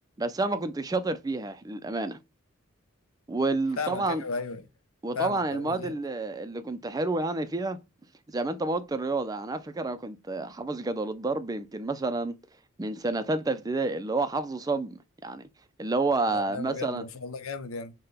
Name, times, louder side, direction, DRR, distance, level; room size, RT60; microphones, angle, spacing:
voice 1, 0.2-2.2 3.3-4.2 5.0-7.8 8.3-12.3 12.8-15.5 15.8-17.0, right 3 dB, 20° right, 0.4 m, -29 dB
voice 2, 3.8-4.6 5.1-5.9 16.3-17.9, left 4 dB, 85° left, 0.6 m, -35 dB
5.6 x 2.2 x 3.4 m
head